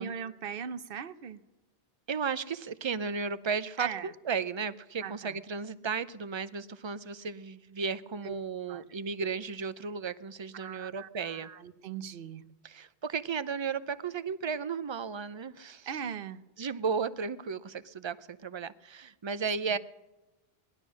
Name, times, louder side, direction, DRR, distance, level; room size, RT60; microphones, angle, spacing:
voice 1, 0.0-1.4 3.8-4.1 5.0-5.4 8.2-8.3 8.7-8.8 10.5-12.4 15.9-16.4 19.7-19.8, right 7 dB, 65° right, 13 dB, 0.9 m, -39 dB
voice 2, 2.1-11.5 12.6-15.9 16.6-19.8, right 5 dB, 35° right, 14 dB, 0.5 m, -34 dB
19.5 x 12.0 x 6.3 m, 1.1 s
omnidirectional pair, 1.1 m